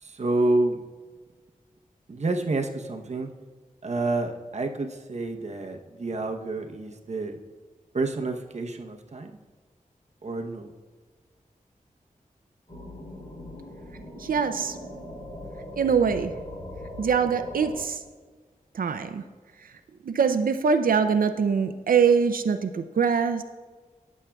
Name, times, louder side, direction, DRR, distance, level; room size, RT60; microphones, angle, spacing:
voice 1, 0.0-0.8 2.1-3.3 3.8-7.4 7.9-9.3 10.2-10.7, right 2 dB, 50° right, 4 dB, 0.8 m, -28 dB
sound 1, 12.7-17.8, left 1 dB, 45° left, 3.3 m, -40 dB
voice 2, 14.2-14.8 15.8-16.3 17.0-18.0 18.7-19.2 20.0-23.4, right 6 dB, 80° right, 9 dB, 0.5 m, -23 dB
18.5 x 7.3 x 2.3 m, 1.4 s
wide cardioid pair, 105°, 14 cm